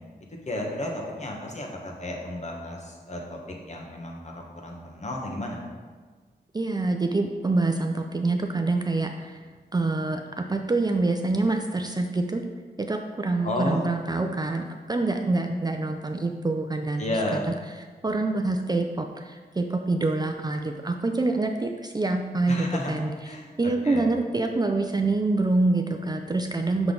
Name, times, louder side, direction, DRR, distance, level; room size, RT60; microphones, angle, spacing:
voice 1, 0.4-3.4 3.7-5.6 13.4-13.8 17.0-17.5 22.5-22.9 23.2-24.1, left 1 dB, 45° left, -1 dB, 1.3 m, -32 dB
voice 2, 6.5-9.4 9.7-12.4 12.8-17.0 17.3-17.4 18.0-23.1 23.6-26.9, right 2 dB, 25° right, 4 dB, 0.4 m, -26 dB
5.9 x 5.5 x 3.9 m, 1.5 s
wide cardioid pair, 80°, 17 cm